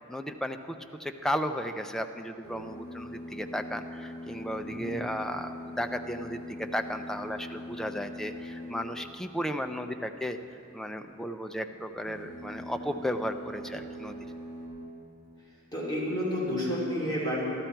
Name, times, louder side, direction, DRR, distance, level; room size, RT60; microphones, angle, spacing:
voice 1, 0.1-10.4 10.7-14.3, equal, ahead, 7 dB, 0.4 m, -34 dB
sound 1, 2.4-9.2 11.9-14.7, left 1 dB, 55° left, 3.3 m, -42 dB
voice 2, 15.7-17.4, equal, 20° left, -7 dB, 2.6 m, -30 dB
13.0 x 12.5 x 4.5 m, 2.8 s
head